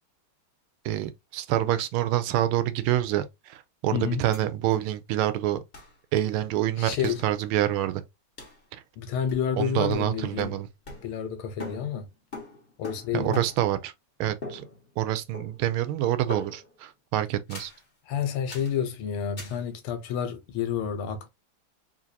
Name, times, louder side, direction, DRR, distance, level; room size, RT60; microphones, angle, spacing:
voice 1, 0.8-5.6 6.1-8.0 9.6-10.7 13.1-13.9 14.2-14.6 15.0-17.7, right 13 dB, 80° right, 1.4 m, -27 dB
voice 2, 3.9-4.2 6.8-7.2 9.0-10.6 11.0-12.1 12.8-13.4 18.1-21.3, left 8 dB, 85° left, 1.7 m, -29 dB
sound 1, 4.3-4.4 4.7-4.8 5.7-6.0 7.0-7.3 8.4-8.6 9.3-9.6 9.9-11.3 11.6-13.8 14.4-15.1 15.3-15.8 16.3-16.8 17.5-17.8 18.5-18.8 19.4-19.6, left 2 dB, 30° left, 1.3 m, -42 dB
3.9 x 2.8 x 2.6 m
omnidirectional pair, 2.4 m